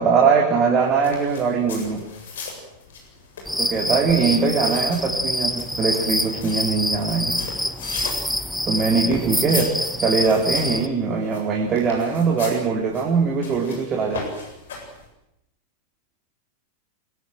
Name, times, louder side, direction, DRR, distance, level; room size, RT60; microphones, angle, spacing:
voice 1, 0.0-2.0 3.6-7.4 8.6-9.7 10.0-14.2, right 5 dB, 25° right, 1 dB, 3.9 m, -21 dB
sound 1, 0.8-15.1, left 4 dB, 60° left, 7.9 m, -39 dB
sound 2, 3.5-10.9, left 1 dB, ahead, 1.0 m, -26 dB
25.0 x 23.0 x 7.9 m, 0.85 s
figure-of-eight pair, 90°, 0 cm